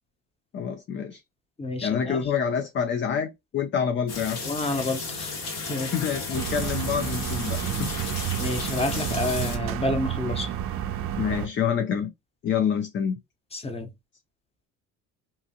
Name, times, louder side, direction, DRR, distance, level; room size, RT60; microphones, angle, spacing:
voice 1, 0.5-1.2 1.8-4.4 5.9-7.9 11.2-12.1 12.4-13.2, left 7 dB, 35° left, 0.5 m, -27 dB
voice 2, 1.6-2.3 4.4-5.3 5.7-5.9 8.4-10.5 13.5-13.9, left 2 dB, 15° left, 0.8 m, -29 dB
sound 1, 4.1-9.6, left 3 dB, 75° left, 1.6 m, -34 dB
sound 2, 6.3-11.5, right 10 dB, 40° right, 0.4 m, -30 dB
2.8 x 2.4 x 2.8 m
supercardioid pair, 85°, 35 cm